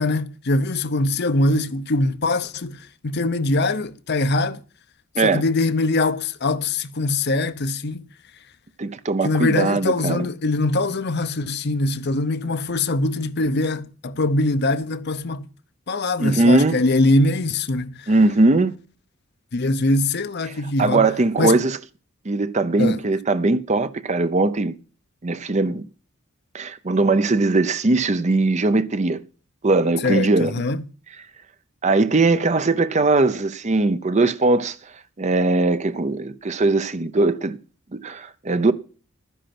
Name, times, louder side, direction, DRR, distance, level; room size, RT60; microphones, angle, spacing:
voice 1, 0.0-2.8 3.0-4.6 5.2-8.0 9.2-15.4 15.9-18.1 19.5-21.1 21.4-21.6 22.8-23.0 30.0-30.8, left 2 dB, 55° left, 0.7 m, -22 dB
voice 2, 8.8-10.3 16.2-16.8 18.1-18.8 20.8-21.8 22.3-24.7 25.2-25.8 26.5-29.2 29.6-30.5 31.8-34.8 35.2-37.6 37.9-38.7, right 3 dB, 35° right, 0.7 m, -20 dB
11.5 x 10.0 x 5.9 m
head